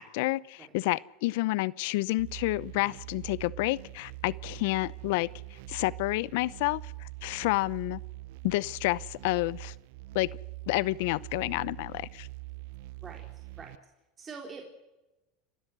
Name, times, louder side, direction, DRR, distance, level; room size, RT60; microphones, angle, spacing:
voice 1, 0.0-5.3 5.7-8.0 8.4-9.7 10.1-10.3 10.7-12.3, left 20 dB, 75° left, 22 dB, 0.6 m, -29 dB
sound 1, 2.2-13.8, right 21 dB, 70° right, 0.8 m, -43 dB
voice 2, 12.9-13.7 14.2-14.6, right 5 dB, 25° right, 1 dB, 3.7 m, -45 dB
29.5 x 13.0 x 8.1 m, 1.0 s
supercardioid pair, 115°, 0 cm